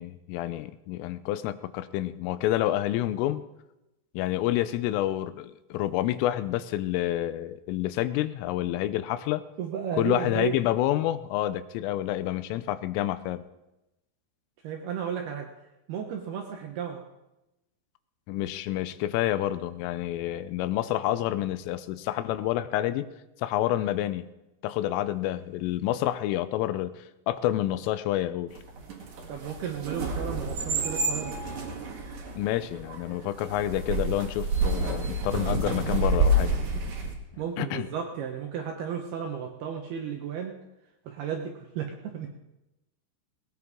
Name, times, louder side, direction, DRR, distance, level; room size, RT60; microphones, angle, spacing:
voice 1, 0.0-3.4 4.1-9.4 10.0-13.5 18.3-23.1 23.4-24.3 24.6-28.6 32.4-36.5 37.6-37.9, left 13 dB, 85° left, 13 dB, 3.2 m, -28 dB
voice 2, 9.6-10.6 14.6-15.5 15.9-17.0 29.3-31.3 37.4-40.6 41.1-42.3, right 8 dB, 75° right, 3 dB, 2.4 m, -33 dB
sound 1, 28.6-37.1, right 2 dB, 50° right, 2.3 m, -29 dB
19.0 x 19.0 x 3.6 m, 0.94 s
omnidirectional pair, 5.8 m